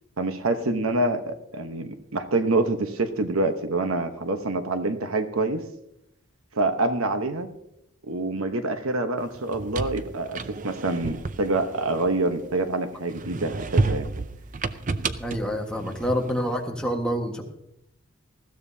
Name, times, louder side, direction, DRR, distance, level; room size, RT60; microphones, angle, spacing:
voice 1, 0.2-5.6 6.5-7.5 8.1-14.1, right 2 dB, 80° right, 8 dB, 1.1 m, -26 dB
sound 1, 9.3-12.6 13.1-16.5, right 3 dB, 35° right, 0.5 m, -30 dB
voice 2, 15.2-17.4, equal, 5° left, 0 dB, 1.5 m, -27 dB
20.0 x 14.5 x 2.8 m, 0.81 s
head